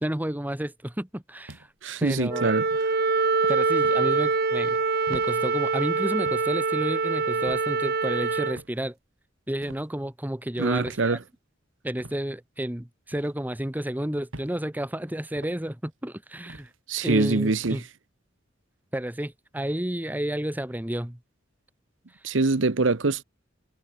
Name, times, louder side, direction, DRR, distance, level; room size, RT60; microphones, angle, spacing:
voice 1, 0.0-1.7 2.0-2.5 3.5-4.8 5.1-9.0 9.5-11.2 11.8-16.7 17.0-17.8 18.9-21.2 22.2-22.3, right 1 dB, 10° right, 1.1 m, -31 dB
sound 1, 1.5-1.9 2.6-2.9 3.8-4.1 5.1-5.3 6.3-6.5 7.5-7.7 8.6-8.8 9.6-9.9 10.8-11.1 12.0-12.2 13.1-13.3 14.3-14.6 15.4-15.6 16.5-16.8 17.6-17.8, right 1 dB, 85° right, 3.8 m, -44 dB
voice 2, 1.8-2.6 10.6-11.2 16.9-17.8 22.2-23.2, right 3 dB, 65° right, 0.9 m, -24 dB
Wind instrument woodwind instrument, 2.3-8.6, right 4 dB, 50° right, 1.4 m, -24 dB
head